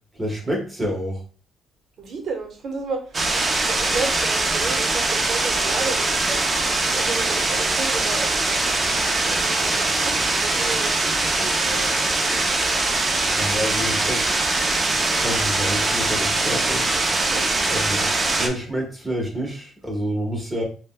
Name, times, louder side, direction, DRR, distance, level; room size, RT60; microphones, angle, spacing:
voice 1, 0.1-1.2 13.4-14.2 14.9-16.9 17.7-20.6, equal, 15° right, -1 dB, 1.2 m, -28 dB
voice 2, 2.0-6.4 6.9-8.8 9.2-11.9 17.2-17.4, right 4 dB, 50° right, 4 dB, 0.9 m, -32 dB
sound 1, 3.1-18.5, right 2 dB, 30° right, 0.5 m, -22 dB
5.0 x 2.2 x 2.2 m, 0.38 s
cardioid pair, 125°, 0 cm